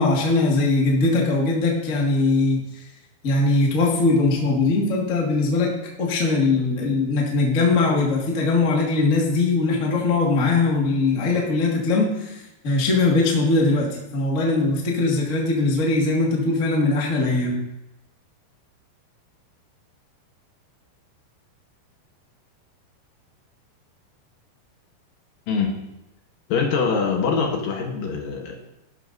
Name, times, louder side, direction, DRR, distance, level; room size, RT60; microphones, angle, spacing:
voice 1, 0.0-2.8 3.2-17.6, left 3 dB, 40° left, -2 dB, 1.1 m, -21 dB
voice 2, 26.5-28.6, left 5 dB, 70° left, 1 dB, 2.5 m, -23 dB
12.5 x 11.5 x 2.6 m, 0.94 s
omnidirectional pair, 4.6 m